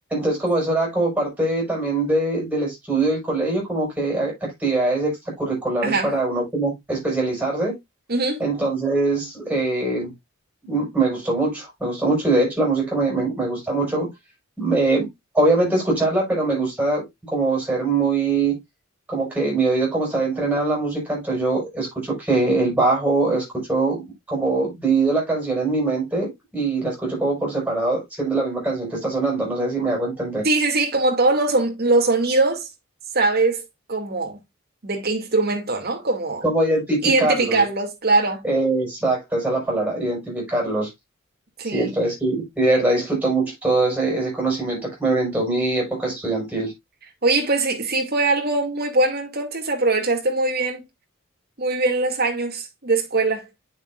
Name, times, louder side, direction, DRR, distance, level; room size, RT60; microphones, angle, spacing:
voice 1, 0.1-7.8 8.4-10.1 10.6-14.1 14.6-15.1 15.3-18.6 19.1-30.4 36.4-37.6 38.4-40.9 41.7-46.7, right 2 dB, 5° right, 5.8 m, -22 dB
voice 2, 5.8-6.1 8.1-8.4 30.4-32.7 33.1-33.6 33.9-34.4 34.8-36.4 37.0-38.4 41.6-41.9 47.2-50.8 51.6-53.5, right 3 dB, 50° right, 2.3 m, -21 dB
8.7 x 7.0 x 2.4 m
head